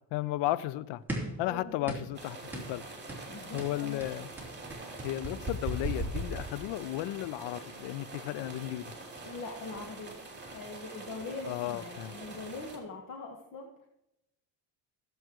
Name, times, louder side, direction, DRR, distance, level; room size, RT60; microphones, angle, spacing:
voice 1, 0.1-1.0 1.4-2.8 3.5-4.3 5.0-8.9 11.4-12.1, left 15 dB, 85° left, 16 dB, 0.6 m, -34 dB
sound 1, 1.1-1.4 1.9-2.2 2.5-2.7 3.1-3.3 3.6-6.9, right 1 dB, 5° right, 3.3 m, -36 dB
voice 2, 1.4-1.9 3.3-4.0 9.2-10.2 10.5-13.9, left 3 dB, 50° left, 2 dB, 1.5 m, -42 dB
sound 2, 2.1-12.8, right 3 dB, 25° right, 2.9 m, -45 dB
16.0 x 7.9 x 3.0 m, 0.85 s
cardioid pair, 110°, 40 cm